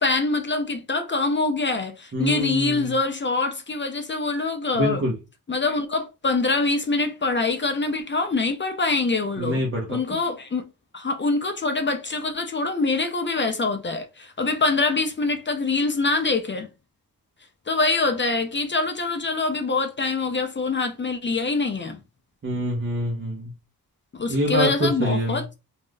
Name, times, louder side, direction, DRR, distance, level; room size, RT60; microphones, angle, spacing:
voice 1, 0.0-5.0 5.5-9.6 9.9-10.6 10.9-16.7 17.7-22.0 24.1-25.4, left 3 dB, 30° left, 0.4 m, -24 dB
voice 2, 2.1-2.9 4.7-5.1 9.4-10.2 22.4-23.5 24.3-25.4, equal, 35° right, 0.8 m, -25 dB
3.3 x 2.6 x 2.2 m
wide cardioid pair, 170°, 38 cm